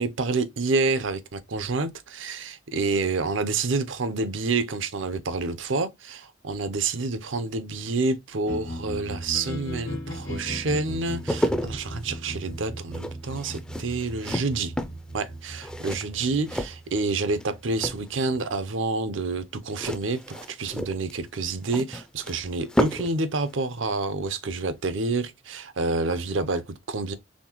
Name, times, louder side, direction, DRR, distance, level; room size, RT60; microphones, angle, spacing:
voice 1, 0.0-14.7 15.1-27.1, right 3 dB, 75° right, 0.7 m, -28 dB
sound 1, 8.4-18.5, equal, 90° left, 1.2 m, -38 dB
sound 2, 11.0-17.5 17.7-18.4 19.7-23.2 23.5-23.6, equal, 5° left, 0.3 m, -32 dB
4.3 x 3.6 x 2.9 m
head